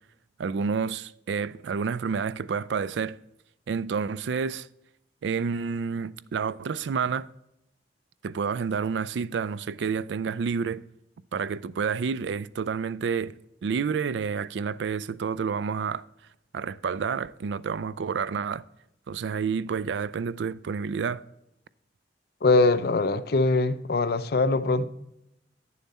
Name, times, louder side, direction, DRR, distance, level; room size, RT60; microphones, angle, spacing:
voice 1, 0.4-3.2 3.7-4.7 5.2-7.3 8.2-10.8 11.3-13.3 13.6-16.0 16.5-18.6 19.1-21.2, right 6 dB, 80° right, 0.4 m, -29 dB
voice 2, 22.4-24.8, left 3 dB, 60° left, 0.5 m, -22 dB
9.6 x 7.0 x 4.1 m
head